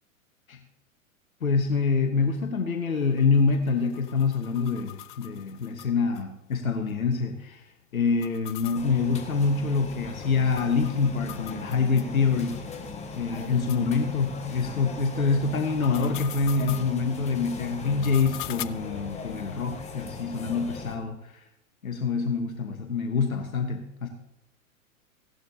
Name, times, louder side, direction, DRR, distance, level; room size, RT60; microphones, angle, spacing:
voice 1, 1.4-7.7 7.9-12.6 13.1-21.5 21.8-24.1, left 4 dB, 80° left, 6 dB, 1.2 m, -26 dB
sound 1, 3.0-6.2 6.5-6.6 6.9-7.0 8.1-12.1 12.5-12.6 13.2-13.3 13.7-13.8 15.5-16.9 17.8-18.6, left 16 dB, 40° left, 0.4 m, -42 dB
sound 2, 8.7-21.0, left 4 dB, 15° left, 1.3 m, -39 dB
15.5 x 11.5 x 2.7 m, 0.82 s
figure-of-eight pair, 105°, 41 cm